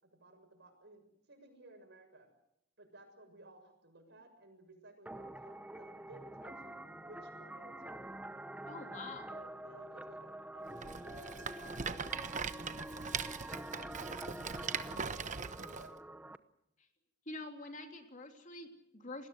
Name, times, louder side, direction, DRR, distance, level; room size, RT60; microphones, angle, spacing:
voice 1, 0.0-2.3 2.8-8.0 9.3-16.0, right 1 dB, 60° right, 6 dB, 6.9 m, -58 dB
sound 1, 5.1-16.4, right 1 dB, 5° right, 0.9 m, -47 dB
voice 2, 8.7-9.3 17.3-19.3, left 2 dB, 40° left, 5 dB, 3.2 m, -46 dB
Rattle, 10.8-15.9, right 6 dB, 40° right, 1.0 m, -40 dB
28.5 x 20.0 x 8.1 m, 0.80 s
head